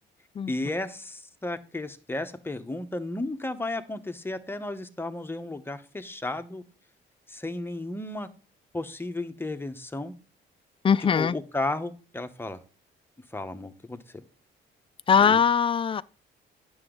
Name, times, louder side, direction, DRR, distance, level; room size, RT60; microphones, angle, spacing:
voice 1, 0.5-6.6 7.3-8.3 8.7-10.1 11.0-12.6 13.3-14.2 15.1-15.4, left 2 dB, 10° left, 0.9 m, -33 dB
voice 2, 10.8-11.3 15.1-16.0, left 7 dB, 25° left, 0.4 m, -21 dB
9.7 x 7.0 x 3.8 m
cardioid pair, 90°, 20 cm